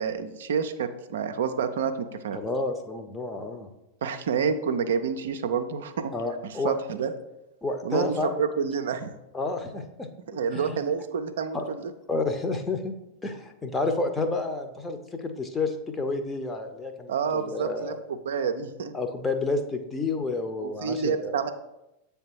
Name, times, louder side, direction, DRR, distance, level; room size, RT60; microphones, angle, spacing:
voice 1, 0.0-1.9 2.2-2.4 4.0-6.1 6.4-7.1 7.8-9.1 10.3-11.9 17.1-19.0 20.6-21.5, right 6 dB, 60° right, 7 dB, 0.4 m, -28 dB
voice 2, 2.3-3.7 6.1-6.7 7.6-8.4 9.3-10.1 10.5-10.8 11.5-11.7 12.1-12.9 13.2-18.0 18.9-21.3, left 3 dB, 15° left, 6 dB, 0.7 m, -30 dB
8.0 x 3.4 x 4.5 m, 0.91 s
figure-of-eight pair, 90°, 0 cm